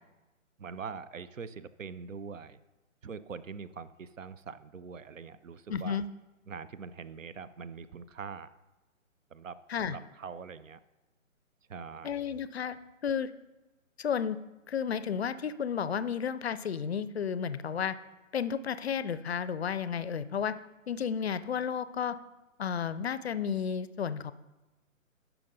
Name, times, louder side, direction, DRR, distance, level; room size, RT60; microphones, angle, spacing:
voice 1, 0.6-2.6 3.0-6.0 6.5-8.5 9.3-9.6 9.9-10.8 11.7-12.1, right 5 dB, 70° right, 15 dB, 0.6 m, -43 dB
voice 2, 5.7-6.1 9.7-10.0 12.0-12.8 13.0-13.3 14.0-14.4 14.7-18.0 18.3-20.5 20.9-22.2 22.6-24.3, left 7 dB, 50° left, 14 dB, 0.5 m, -32 dB
15.0 x 5.9 x 2.6 m, 1.1 s
figure-of-eight pair, 135°, 40 cm